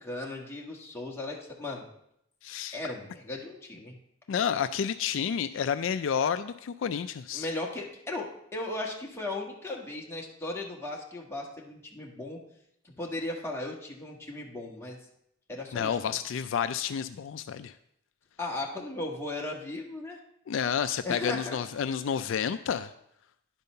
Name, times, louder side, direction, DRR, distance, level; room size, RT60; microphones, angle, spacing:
voice 1, 0.0-1.8 2.7-3.9 7.3-12.4 12.8-15.0 15.5-16.2 18.4-20.2 21.0-21.6, left 2 dB, 10° left, -2 dB, 1.4 m, -36 dB
voice 2, 2.4-2.7 4.3-7.5 15.7-17.7 20.5-22.9, left 7 dB, 65° left, 11 dB, 0.3 m, -30 dB
10.5 x 5.4 x 5.5 m, 0.76 s
head